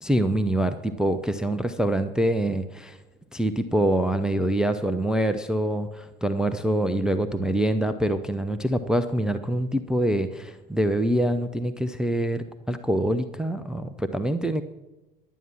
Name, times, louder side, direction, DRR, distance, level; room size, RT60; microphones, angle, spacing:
voice 1, 0.0-3.0 3.3-14.6, right 1 dB, ahead, 9 dB, 0.6 m, -25 dB
11.0 x 9.3 x 7.4 m, 1.0 s
figure-of-eight pair, 65°, 30 cm